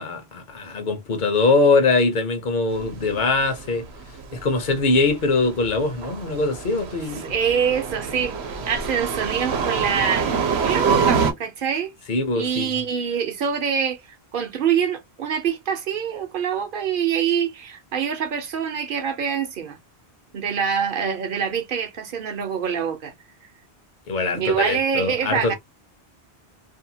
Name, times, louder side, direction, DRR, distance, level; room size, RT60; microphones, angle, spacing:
voice 1, 0.0-3.9 4.4-7.3 12.1-12.7 24.1-25.5, left 3 dB, 50° left, 0.8 m, -22 dB
sound 1, 2.8-11.3, right 6 dB, 85° right, 0.9 m, -26 dB
voice 2, 7.2-11.9 12.3-14.0 14.3-19.8 20.3-23.1 24.3-25.5, right 7 dB, 60° right, 0.8 m, -25 dB
2.7 x 2.2 x 2.7 m
omnidirectional pair, 1.1 m